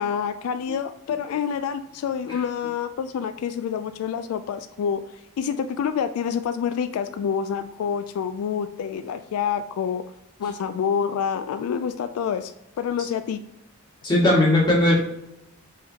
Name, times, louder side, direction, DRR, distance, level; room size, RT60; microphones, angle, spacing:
voice 1, 0.0-10.0 10.4-12.5 12.8-13.4, left 7 dB, 85° left, 13 dB, 0.3 m, -27 dB
voice 2, 14.0-14.9, left 1 dB, 20° left, -5 dB, 1.6 m, -18 dB
5.5 x 3.4 x 2.8 m, 0.83 s
head